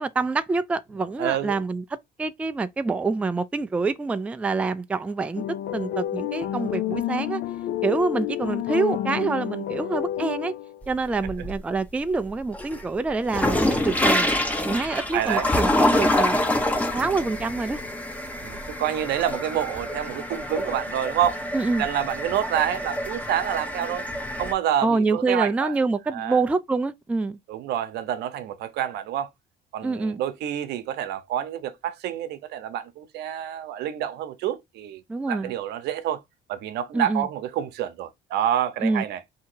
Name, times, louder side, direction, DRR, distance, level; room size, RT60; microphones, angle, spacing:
voice 1, 0.0-5.4 5.7-7.4 7.8-10.5 10.9-14.4 14.6-16.4 16.9-17.8 21.5-21.9 24.8-27.4 29.8-30.2 35.1-35.5 36.9-37.3 38.8-39.0, right 3 dB, 10° right, 0.3 m, -26 dB
voice 2, 1.2-1.6 15.1-15.5 16.5-16.7 18.4-21.4 21.8-24.0 24.4-25.7 26.1-26.4 27.5-29.3 29.7-35.0 35.3-36.2 36.5-39.2, right 10 dB, 75° right, 0.8 m, -28 dB
sound 1, 5.4-10.8, left 12 dB, 70° left, 0.4 m, -29 dB
sound 2, 10.8-11.8 12.2-24.5, left 1 dB, 10° left, 0.8 m, -26 dB
3.7 x 2.8 x 4.4 m
cardioid pair, 110°, 17 cm